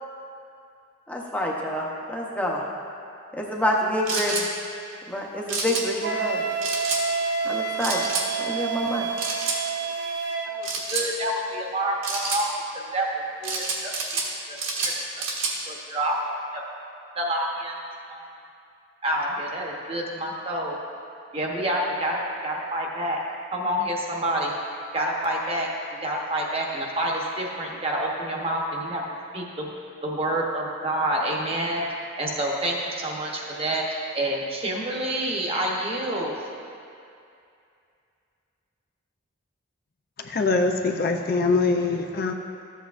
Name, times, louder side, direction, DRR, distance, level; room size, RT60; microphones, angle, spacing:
voice 1, 1.1-2.6 3.3-4.5 5.1-6.4 7.4-8.1 8.4-9.1, equal, 5° left, -2 dB, 0.7 m, -27 dB
sound 1, 4.1-4.5 5.5-5.8 6.6-7.0 7.8-8.3 9.2-9.6 10.6-11.1 12.0-12.4 13.4-14.3 14.6-15.5, right 4 dB, 70° right, 1.3 m, -28 dB
Wind instrument woodwind instrument, 6.0-10.6, right 5 dB, 55° right, 0.7 m, -28 dB
voice 2, 10.5-12.5 12.7-13.9 14.5-15.2 15.7-16.6 17.1-17.7 18.1-18.3 19.0-20.8 21.3-23.2 23.5-24.6 24.9-25.7 26.0-29.0 29.3-29.7 30.0-31.8 32.2-36.3, right 1 dB, 30° right, -2 dB, 0.9 m, -28 dB
voice 3, 40.2-42.3, left 3 dB, 45° left, 3 dB, 0.4 m, -23 dB
13.5 x 8.2 x 2.5 m, 2.5 s
head